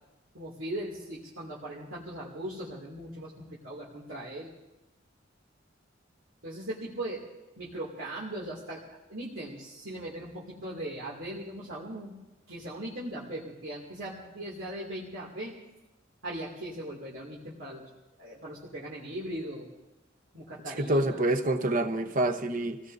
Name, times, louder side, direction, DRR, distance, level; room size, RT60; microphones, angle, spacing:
voice 1, 0.3-4.5 6.4-7.2 7.6-8.8 9.1-12.2 12.5-15.5 16.2-17.9 18.2-19.7 20.3-21.3, right 1 dB, 90° right, -6 dB, 2.6 m, -39 dB
voice 2, 20.8-22.8, right 1 dB, 45° right, 7 dB, 0.9 m, -27 dB
27.5 x 17.5 x 2.7 m, 0.97 s
head